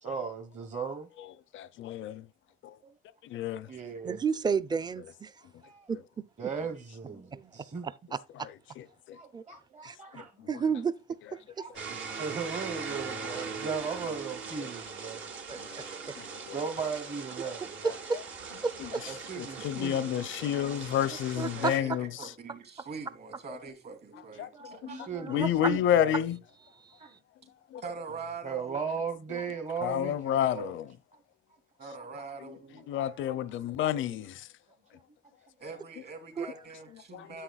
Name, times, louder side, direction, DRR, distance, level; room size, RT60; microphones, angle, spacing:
voice 1, 0.0-1.1 3.6-4.2 5.4-5.8 6.4-7.9 9.1-10.5 11.6-15.3 16.5-17.9 19.1-20.1 24.1-26.3 27.0-27.2 28.4-30.7 32.2-32.3 32.8-33.6 34.9-35.0 35.5-35.6 37.1-37.3, right 5 dB, 35° right, 1.0 m, -38 dB
voice 2, 1.5-2.2 3.2-3.7 8.8-9.2 10.1-10.5 13.2-13.4 15.7-15.8 16.2-16.5 18.8-18.9 19.4-22.3 24.4-24.5 24.8-25.0 25.3-26.4 27.7-27.8 29.8-30.9 32.4-32.5 32.9-34.5 37.1-37.3, left 10 dB, 75° left, 0.6 m, -30 dB
voice 3, 4.0-5.3 5.9-6.0 7.3-7.5 7.8-8.5 9.3-9.4 9.8-10.0 10.5-11.4 15.5-16.2 17.8-18.2 18.6-19.1 21.4-22.0 24.9-25.7 26.8-26.9 36.4-36.5, right 5 dB, 20° right, 0.5 m, -32 dB
sound 1, 11.7-21.8, right 5 dB, 75° right, 1.9 m, -40 dB
voice 4, 21.5-25.0 27.8-28.7 31.8-32.8 35.6-37.4, right 4 dB, 55° right, 3.1 m, -43 dB
10.0 x 7.9 x 2.3 m
cardioid pair, 90°, 20 cm